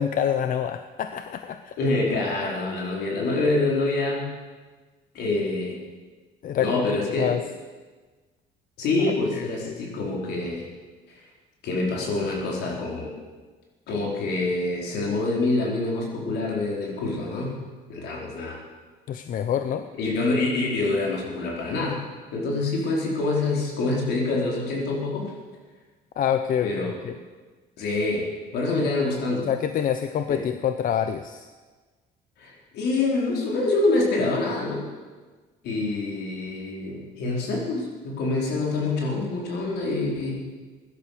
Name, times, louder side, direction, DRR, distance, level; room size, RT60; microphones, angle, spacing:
voice 1, 0.0-1.8 6.4-7.4 9.0-9.8 19.1-19.9 26.2-27.1 28.8-28.9 29.4-31.5, left 9 dB, 55° left, 9 dB, 0.8 m, -27 dB
voice 2, 1.8-4.3 5.1-5.8 6.6-7.3 8.8-10.7 11.1-11.2 11.6-13.2 13.9-17.6 17.9-18.6 19.9-22.0 22.3-25.3 26.6-26.9 27.8-29.5 30.3-30.4 32.4-34.8 35.6-40.4, left 2 dB, 75° left, -2 dB, 4.5 m, -26 dB
16.5 x 11.5 x 6.8 m, 1.4 s
cardioid pair, 110°, 17 cm